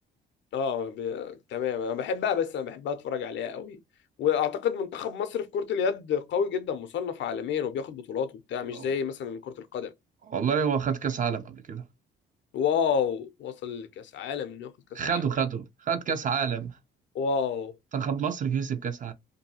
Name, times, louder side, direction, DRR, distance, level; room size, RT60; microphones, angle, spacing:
voice 1, 0.5-3.8 4.2-9.9 12.5-15.2 17.1-17.7, left 7 dB, 70° left, 0.5 m, -29 dB
voice 2, 10.3-11.8 14.9-16.8 17.9-19.1, right 7 dB, 40° right, 0.5 m, -28 dB
2.6 x 2.3 x 2.7 m
cardioid pair, 90°, 20 cm